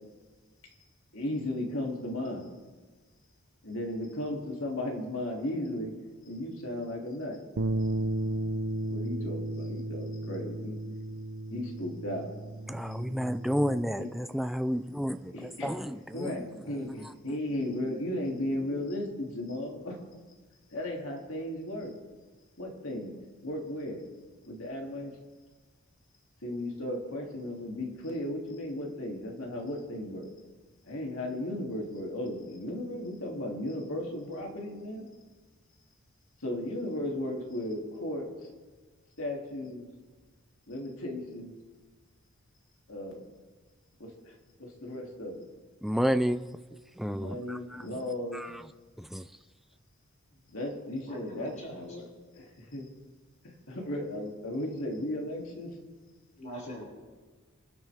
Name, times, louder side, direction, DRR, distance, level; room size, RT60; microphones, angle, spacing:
voice 1, 1.1-2.5 3.6-5.9 6.2-7.4 8.9-10.8 11.5-12.3 14.0-14.1 15.3-15.8 16.1-20.0 20.7-21.9 22.6-23.2 23.4-24.0 24.4-25.1 26.4-30.3 30.9-35.0 36.4-38.3 39.2-39.9 40.7-41.5 42.9-43.3 44.0-45.4 47.1-48.4 50.5-52.1 52.3-52.9 53.7-55.7, left 1 dB, 70° left, 0 dB, 2.9 m, -35 dB
sound 1, 7.6-13.8, right 1 dB, 55° right, 0.6 m, -34 dB
voice 2, 12.7-16.3 45.8-46.4 47.0-47.9 48.3-48.6 49.0-49.3, equal, ahead, 9 dB, 0.4 m, -31 dB
voice 3, 51.0-51.8 56.4-56.8, equal, 35° left, -3 dB, 5.8 m, -42 dB
27.5 x 12.0 x 3.6 m, 1.4 s
head